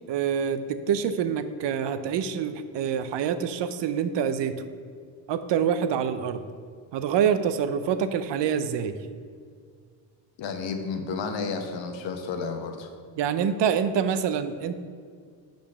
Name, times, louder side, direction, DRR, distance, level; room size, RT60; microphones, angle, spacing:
voice 1, 0.1-4.5 5.3-6.4 6.9-9.0 13.2-14.8, right 8 dB, 65° right, 11 dB, 0.6 m, -26 dB
voice 2, 10.4-12.9, left 4 dB, 75° left, 6 dB, 0.9 m, -32 dB
5.2 x 5.1 x 5.9 m, 2.1 s
cardioid pair, 75°, 46 cm